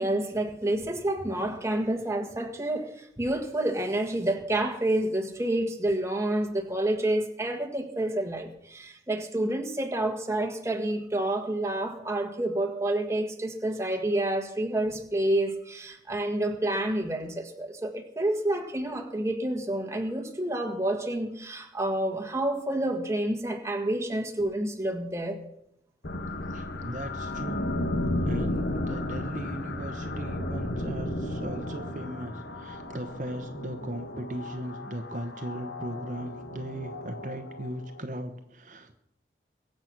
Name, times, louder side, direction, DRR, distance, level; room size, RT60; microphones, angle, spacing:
voice 1, 0.0-25.4, right 1 dB, 15° right, 5 dB, 1.5 m, -29 dB
sound 1, 26.0-38.0, left 1 dB, 85° left, 1.9 m, -34 dB
voice 2, 26.5-27.7 28.2-39.0, right 1 dB, 45° right, 7 dB, 1.0 m, -38 dB
22.5 x 7.8 x 6.1 m, 0.76 s
head